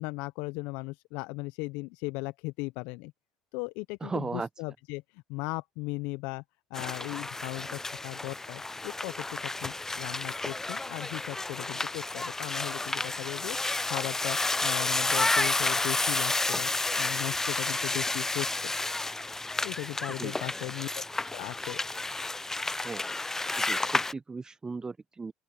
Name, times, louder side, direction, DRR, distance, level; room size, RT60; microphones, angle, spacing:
voice 1, 0.0-3.1 3.5-6.4 6.7-13.6 13.9-16.7 17.0-18.7 19.6-21.0 21.3-21.8, left 25 dB, 70° left, 1.1 m, -37 dB
voice 2, 4.0-4.5 20.2-20.7 22.8-23.0 23.7-25.3, right 4 dB, 25° right, 1.2 m, -37 dB
sound 1, 6.7-24.1, left 2 dB, 15° left, 0.7 m, -31 dB
open air
hypercardioid pair, 60°, 3 cm